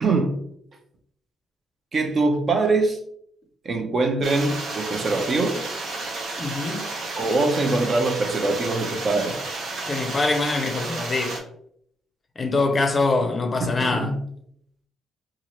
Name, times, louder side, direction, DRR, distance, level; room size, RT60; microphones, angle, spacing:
voice 1, 0.0-0.4 1.9-3.0 3.6-5.6 7.1-9.4 13.8-14.2, right 3 dB, 45° right, 0.6 m, -23 dB
sound 1, 4.2-11.4, right 3 dB, 75° right, 0.7 m, -32 dB
voice 2, 6.4-6.9 9.9-11.4 12.4-14.2, left 3 dB, 35° left, 0.5 m, -24 dB
2.9 x 2.4 x 2.9 m
cardioid pair, 90°, 0 cm